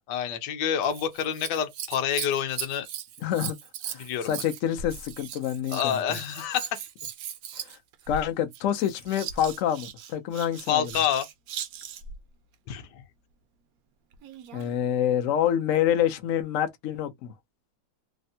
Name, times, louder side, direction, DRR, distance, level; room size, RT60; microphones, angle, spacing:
voice 1, 0.1-2.9 4.0-4.4 5.7-6.8 10.7-11.3 12.7-13.0, left 9 dB, 70° left, 1.2 m, -28 dB
Scissors, 0.8-12.2 14.1-14.8 15.5-15.6, right 8 dB, 85° right, 0.8 m, -39 dB
voice 2, 3.2-3.6 3.9-6.0 7.5-7.8 8.1-10.9 14.5-17.3, left 10 dB, 90° left, 0.7 m, -27 dB
3.3 x 2.1 x 2.6 m
omnidirectional pair, 2.1 m